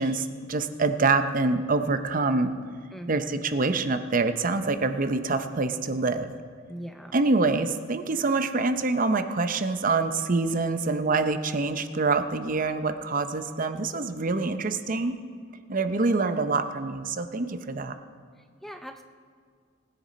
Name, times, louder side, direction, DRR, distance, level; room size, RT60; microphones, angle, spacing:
voice 1, 0.0-2.5 3.1-6.3 7.1-15.2 15.7-18.0, right 3 dB, 45° right, 9 dB, 0.7 m, -26 dB
voice 2, 2.9-3.4 6.7-7.2 18.4-19.0, equal, ahead, 6 dB, 0.5 m, -41 dB
19.5 x 10.0 x 4.2 m, 2.1 s
head